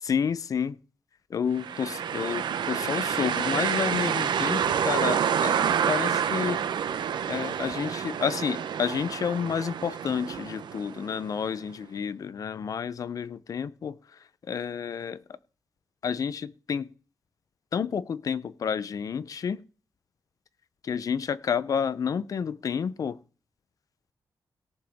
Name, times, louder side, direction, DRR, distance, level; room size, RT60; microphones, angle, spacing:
voice 1, 0.0-0.8 1.3-5.6 5.9-6.6 7.3-14.2 14.5-15.2 16.0-16.9 17.7-19.6 20.8-23.2, left 7 dB, 50° left, 17 dB, 0.6 m, -30 dB
sound 1, 1.6-11.4, right 8 dB, 90° right, 0.8 m, -28 dB
17.5 x 7.7 x 3.5 m, 0.37 s
wide cardioid pair, 170°, 8 cm